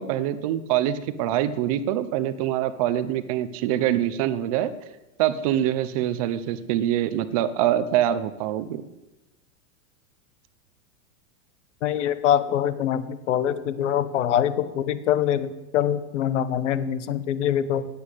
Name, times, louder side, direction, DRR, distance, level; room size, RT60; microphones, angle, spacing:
voice 1, 0.0-4.7 5.2-8.8, right 11 dB, 25° right, 13 dB, 0.7 m, -24 dB
voice 2, 11.8-17.9, left 10 dB, 55° left, 14 dB, 1.2 m, -24 dB
17.5 x 8.6 x 8.4 m, 1.0 s
supercardioid pair, 180°, 42 cm